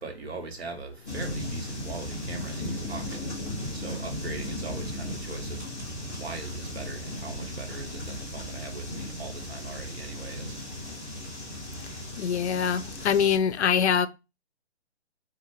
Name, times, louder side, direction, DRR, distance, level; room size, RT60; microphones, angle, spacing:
voice 1, 0.0-3.3 3.7-5.6 6.1-10.6, right 3 dB, 65° right, 1.0 m, -40 dB
sound 1, 1.1-13.4, left 1 dB, 15° right, 0.6 m, -36 dB
voice 2, 12.2-14.1, left 7 dB, 70° left, 0.5 m, -24 dB
2.5 x 2.4 x 3.1 m
hypercardioid pair, 175°, 35 cm